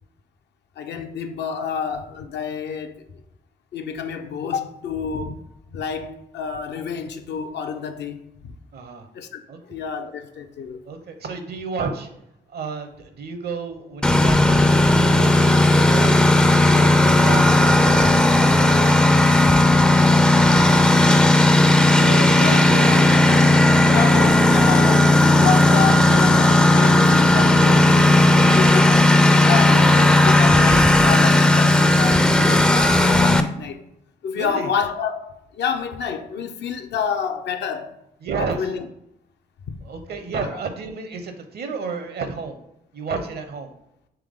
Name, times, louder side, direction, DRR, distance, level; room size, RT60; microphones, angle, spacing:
voice 1, 0.8-3.2 3.7-5.4 5.7-8.6 9.1-10.8 20.5-20.6 22.3-23.1 23.6-27.9 28.6-29.1 29.4-33.8 34.2-38.0 38.4-38.9 39.7-39.8 40.5-40.6, left 7 dB, 65° left, 0.5 m, -29 dB
voice 2, 8.7-9.1 9.5-9.6 10.9-12.1 12.5-16.1 16.7-19.7 20.1-21.2 22.0-23.0 27.7-28.7 34.3-34.7 38.2-38.6 39.8-42.6 42.9-43.7, right 4 dB, 60° right, 0.7 m, -32 dB
Engine, 14.0-33.4, left 1 dB, 5° left, 0.3 m, -15 dB
3.4 x 3.3 x 3.6 m
supercardioid pair, 50°, 19 cm